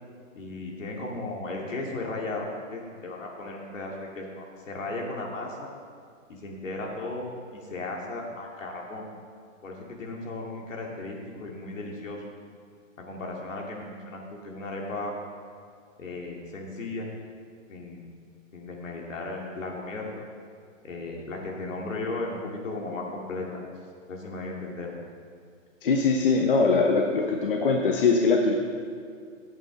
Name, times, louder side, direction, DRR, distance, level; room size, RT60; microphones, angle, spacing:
voice 1, 0.3-5.7 6.3-9.1 9.6-12.2 13.0-15.1 16.0-17.1 17.7-18.1 18.5-20.2 20.8-23.6 24.1-24.9, left 2 dB, 70° left, -1 dB, 2.5 m, -35 dB
voice 2, 25.8-28.6, left 4 dB, 45° left, 1 dB, 0.8 m, -22 dB
13.0 x 8.4 x 4.0 m, 2.2 s
hypercardioid pair, 180°, 40 cm